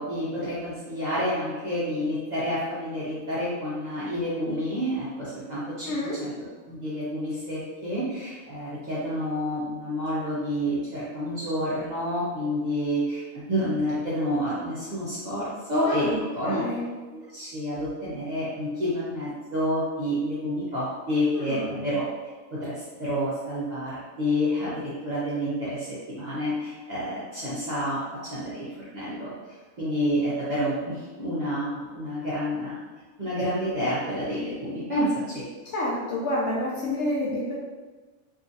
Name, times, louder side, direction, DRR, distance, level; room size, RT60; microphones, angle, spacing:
voice 1, 0.0-6.3 6.7-16.6 17.1-22.0 22.5-29.3 29.8-32.8 33.2-35.4, equal, 45° right, -9 dB, 0.6 m, -29 dB
voice 2, 5.9-6.2 15.9-16.9 21.3-21.9 35.7-37.5, left 1 dB, 65° left, -4 dB, 0.8 m, -29 dB
2.8 x 2.5 x 2.6 m, 1.3 s
omnidirectional pair, 1.4 m